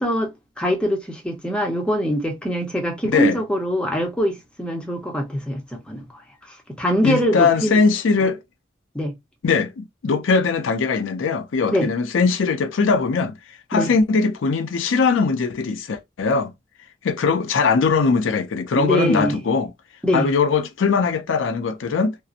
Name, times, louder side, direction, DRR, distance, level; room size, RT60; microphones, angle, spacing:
voice 1, 0.0-6.2 6.8-7.8 8.9-9.1 11.7-11.9 13.7-13.9 18.7-19.4 20.0-20.3, equal, 5° left, 0.6 m, -23 dB
voice 2, 3.0-3.4 7.0-8.4 9.4-13.3 13.7-16.5 17.0-19.7 20.1-22.2, left 4 dB, 75° left, 0.4 m, -20 dB
2.7 x 2.0 x 2.4 m
head